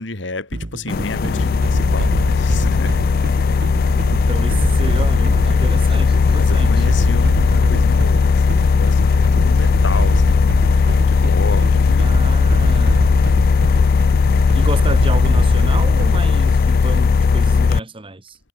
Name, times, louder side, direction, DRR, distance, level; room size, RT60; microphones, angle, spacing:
voice 1, 0.0-3.1 4.5-4.6 6.3-12.1, left 2 dB, 70° left, 2.2 m, -31 dB
sound 1, 0.5-16.4, right 1 dB, 60° right, 1.3 m, -26 dB
sound 2, 0.9-17.8, left 5 dB, 50° left, 0.4 m, -16 dB
voice 2, 4.1-6.8 12.0-13.2 14.5-18.4, right 2 dB, 30° right, 1.6 m, -30 dB
head